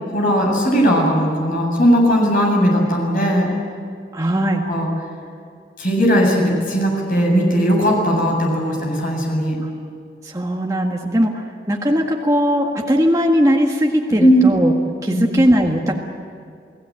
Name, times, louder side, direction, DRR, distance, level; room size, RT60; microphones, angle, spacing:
voice 1, 0.1-3.5 4.7-4.9 5.8-9.6 14.2-14.4 15.1-15.2, equal, 50° left, -1 dB, 7.6 m, -17 dB
voice 2, 4.1-4.6 9.6-9.7 10.2-14.7 15.0-15.9, equal, 20° right, 0 dB, 1.7 m, -19 dB
29.5 x 18.0 x 8.9 m, 2.4 s
head